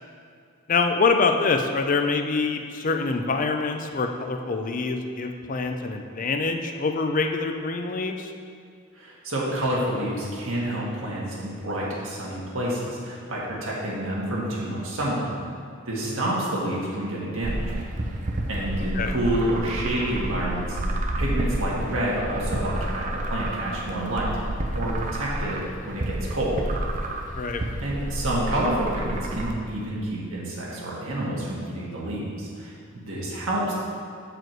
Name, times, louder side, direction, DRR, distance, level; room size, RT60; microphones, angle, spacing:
voice 1, 0.7-8.3 16.0-16.3 18.9-19.1 27.4-27.6, left 4 dB, 40° left, 5 dB, 0.5 m, -25 dB
voice 2, 8.9-15.3 15.9-17.7 18.5-20.8 21.2-24.3 24.7-25.6 25.9-26.6 27.8-33.7, right 1 dB, 75° right, -5 dB, 1.7 m, -28 dB
sound 1, 17.4-29.5, right 1 dB, 35° right, 0.6 m, -30 dB
7.9 x 5.0 x 4.6 m, 2.3 s
head